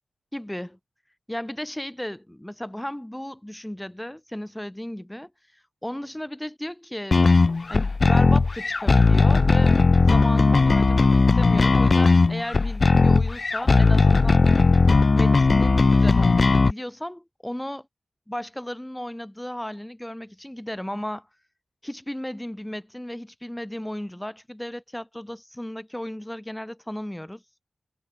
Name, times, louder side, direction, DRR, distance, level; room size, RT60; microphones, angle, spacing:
voice 1, 0.3-0.8 1.3-5.3 5.8-7.3 7.7-9.8 10.0-14.5 15.1-17.9 18.3-21.3 21.8-27.4, left 1 dB, 10° left, 5.4 m, -34 dB
sound 1, 7.1-16.7, left 3 dB, 50° left, 1.6 m, -18 dB
wide cardioid pair, 70°, 0 cm